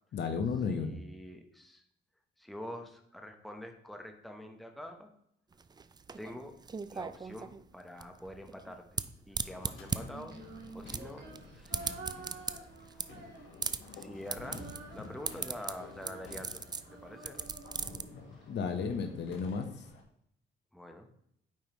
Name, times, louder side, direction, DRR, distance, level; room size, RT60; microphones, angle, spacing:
voice 1, 0.1-0.9 18.5-19.7, left 5 dB, 60° left, 7 dB, 1.1 m, -33 dB
voice 2, 0.7-1.8 2.4-5.1 6.2-6.5 6.9-10.4 10.7-12.4 12.8-12.9 13.2-13.3 13.9-16.6 17.0-17.5 20.7-21.1, left 1 dB, ahead, 4 dB, 1.0 m, -46 dB
sound 1, 5.5-18.0, right 5 dB, 20° right, 0.4 m, -39 dB
sound 2, 9.4-20.0, left 4 dB, 80° left, 1.5 m, -52 dB
Female singing, 10.0-13.9 14.2-18.4, right 3 dB, 60° right, 2.1 m, -50 dB
9.0 x 5.1 x 3.1 m, 0.72 s
cardioid pair, 90°, 20 cm